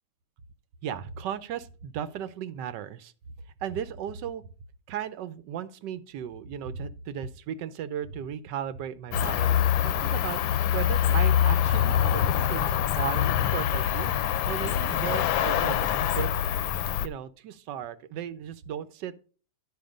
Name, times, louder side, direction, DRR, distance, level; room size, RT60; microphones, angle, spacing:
voice 1, 0.8-3.1 3.6-4.4 4.9-10.4 10.7-16.3 17.0-19.1, right 9 dB, 70° right, 14 dB, 1.2 m, -36 dB
Cricket, 9.1-17.1, left 10 dB, 90° left, 1.4 m, -25 dB
10.5 x 5.0 x 5.1 m, 0.39 s
omnidirectional pair, 2.1 m